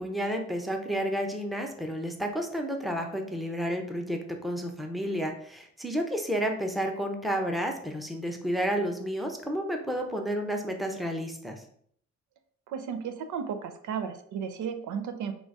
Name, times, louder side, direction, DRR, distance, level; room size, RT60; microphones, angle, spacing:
voice 1, 0.0-11.6, equal, ahead, 3 dB, 0.7 m, -31 dB
voice 2, 12.7-15.3, right 7 dB, 75° right, 8 dB, 0.6 m, -34 dB
3.9 x 2.5 x 4.7 m, 0.64 s
cardioid pair, 90°, 30 cm